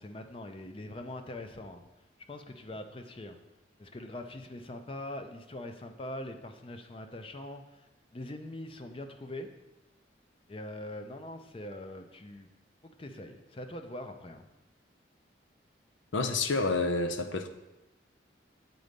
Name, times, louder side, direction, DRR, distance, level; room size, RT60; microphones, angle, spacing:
voice 1, 0.0-1.8 2.3-3.4 3.8-9.5 10.5-12.5 12.8-14.5, left 1 dB, 30° left, 6 dB, 0.5 m, -42 dB
voice 2, 16.1-17.5, left 3 dB, 85° left, 8 dB, 0.6 m, -29 dB
7.8 x 4.0 x 5.2 m, 0.99 s
head